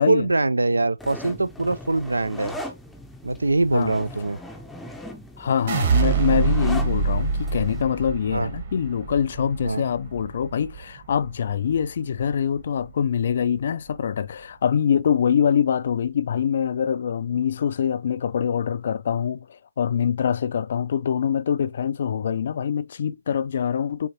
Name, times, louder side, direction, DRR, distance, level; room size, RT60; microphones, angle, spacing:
voice 1, 0.0-2.6 3.2-4.4 8.3-8.5 9.6-9.8, right 2 dB, 85° right, 0.4 m, -23 dB
sound 1, 1.0-7.8, left 1 dB, 5° left, 0.6 m, -39 dB
voice 2, 5.4-24.1, left 8 dB, 50° left, 0.4 m, -24 dB
sound 2, 5.7-11.8 12.2-12.8, right 5 dB, 45° right, 1.1 m, -26 dB
7.0 x 2.6 x 2.8 m
figure-of-eight pair, 140°, 0 cm